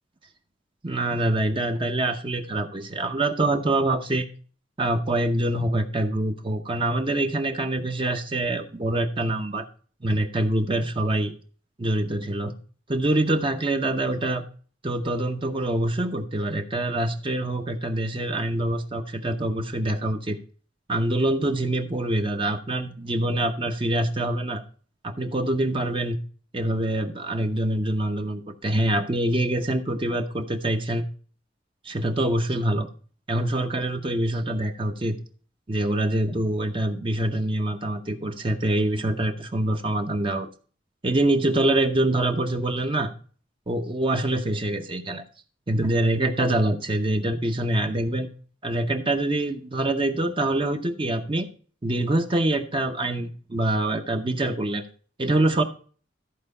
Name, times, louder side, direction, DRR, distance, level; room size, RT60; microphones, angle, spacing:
voice 1, 0.8-4.3 4.8-9.7 10.0-11.3 11.8-12.5 12.9-14.4 14.8-20.4 20.9-24.6 25.0-26.2 26.5-31.0 31.8-32.9 33.3-35.2 35.7-40.5 41.0-43.1 43.7-45.2 45.7-48.3 48.6-51.5 51.8-54.9 55.2-55.6, right 1 dB, 30° right, 5 dB, 0.8 m, -25 dB
13.5 x 4.5 x 5.3 m, 0.41 s
head